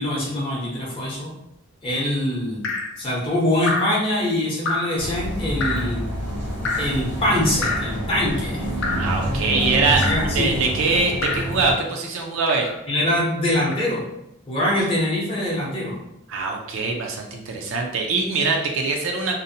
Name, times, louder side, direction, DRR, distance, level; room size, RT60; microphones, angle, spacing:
voice 1, 0.0-1.3 1.8-2.7 3.0-6.0 6.8-8.6 10.0-10.5 12.9-14.0 14.5-16.0, left 1 dB, 25° left, -5 dB, 0.7 m, -23 dB
Drip, 2.6-3.0 3.6-4.0 4.6-5.0 5.6-5.9 6.6-7.0 7.6-8.0 8.8-9.2 10.0-10.3 11.2-11.5 12.5-12.8 13.7-13.9, left 2 dB, 55° left, 0.4 m, -27 dB
sound 1, 5.0-11.7, equal, 85° right, 1.1 m, -27 dB
voice 2, 9.0-10.1 10.3-12.7 16.3-19.4, right 3 dB, 60° right, 1 dB, 0.4 m, -23 dB
2.6 x 2.1 x 2.6 m, 0.82 s
head